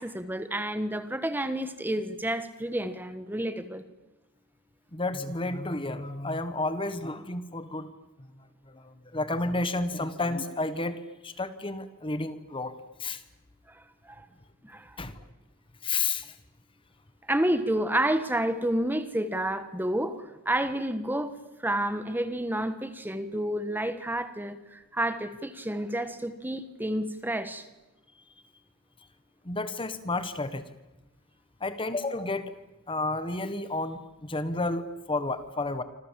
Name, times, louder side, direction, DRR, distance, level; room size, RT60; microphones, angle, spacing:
voice 1, 0.0-3.8 13.7-14.3 14.6-15.0 17.3-27.6, right 1 dB, 10° right, 11 dB, 1.4 m, -30 dB
voice 2, 4.9-7.9 8.2-12.7 13.0-13.2 15.0-15.2 15.8-16.3 27.4-27.5 29.4-30.6 31.6-32.5 32.9-35.8, left 2 dB, 25° left, 12 dB, 1.3 m, -31 dB
28.0 x 26.5 x 7.5 m, 1.1 s
head